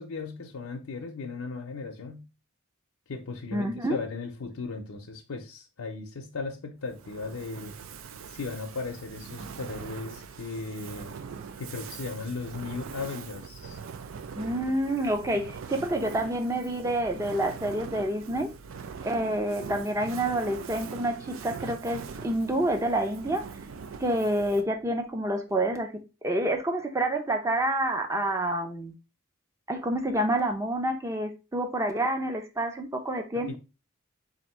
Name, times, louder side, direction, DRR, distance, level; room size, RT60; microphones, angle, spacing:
voice 1, 0.0-2.3 3.1-7.7 8.3-11.1 11.6-13.8 33.3-33.6, left 4 dB, 85° left, 0.6 m, -37 dB
voice 2, 3.5-4.0 14.4-18.5 19.0-23.4 24.0-25.9 26.2-28.9 29.7-33.6, right 1 dB, 15° right, 0.6 m, -28 dB
Fire, 6.9-24.8, right 6 dB, 65° right, 0.4 m, -42 dB
3.6 x 2.6 x 4.2 m
head